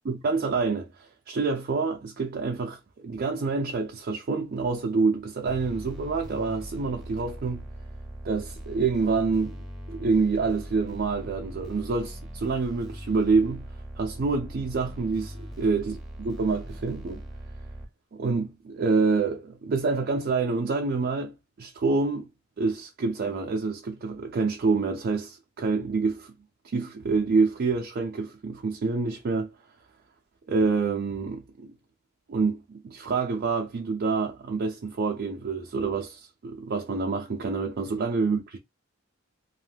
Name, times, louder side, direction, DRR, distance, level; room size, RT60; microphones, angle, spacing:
voice 1, 0.1-7.6 8.2-9.6 9.9-13.7 14.0-17.2 18.1-22.3 22.6-26.3 26.6-29.5 30.5-31.7 32.3-38.6, right 4 dB, 50° right, 0.4 m, -27 dB
sound 1, 5.5-17.9, equal, ahead, 0.7 m, -40 dB
2.5 x 2.1 x 3.2 m
head